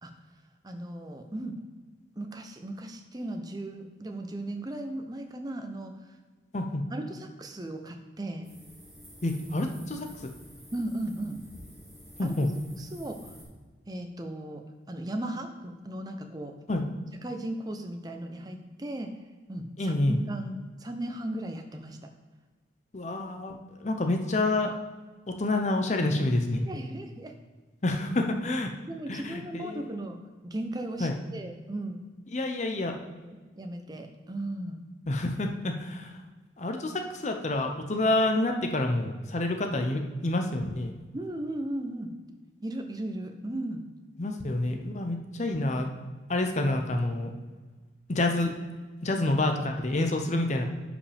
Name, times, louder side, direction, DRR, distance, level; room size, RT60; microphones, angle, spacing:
voice 1, 0.6-1.6 2.2-5.9 6.9-8.5 10.7-11.4 12.2-12.3 12.8-13.3 13.9-16.5 17.2-19.2 19.5-22.0 26.6-27.3 28.8-30.2 30.4-32.0 33.2-34.8 41.1-42.1 42.6-43.8, right 1 dB, 20° right, 5 dB, 0.6 m, -36 dB
sound 1, 8.4-13.4, equal, ahead, 2.4 m, -50 dB
voice 2, 9.2-10.1 12.2-12.5 16.7-16.8 19.8-20.2 22.9-24.7 25.3-26.6 27.8-28.7 29.1-30.0 31.0-31.2 32.3-33.0 35.1-36.1 36.6-40.9 44.2-45.9 46.3-47.3 48.1-48.5 49.0-50.6, left 2 dB, 40° left, 4 dB, 0.7 m, -28 dB
10.5 x 5.0 x 3.4 m, 1.3 s
head